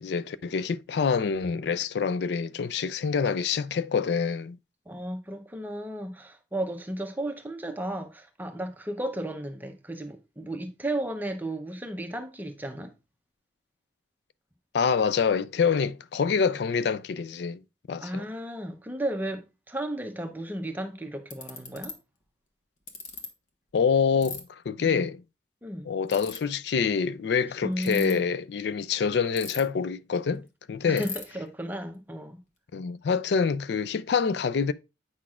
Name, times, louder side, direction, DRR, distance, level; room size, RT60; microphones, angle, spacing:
voice 1, 0.0-4.6 14.7-17.6 17.9-18.2 23.7-25.2 25.9-31.1 32.7-34.7, left 6 dB, 65° left, 0.4 m, -26 dB
voice 2, 4.9-12.9 18.0-22.0 25.6-25.9 27.6-28.3 30.8-32.4, right 1 dB, 10° right, 0.7 m, -34 dB
Ratchet pawl, 20.6-20.7 21.3-21.9 22.9-23.3 24.2-24.4 26.1-26.4 27.7-28.1 29.4-29.8 30.2-30.3 30.5-30.6 31.0-31.2, left 4 dB, 40° left, 1.2 m, -37 dB
8.5 x 5.9 x 2.4 m
head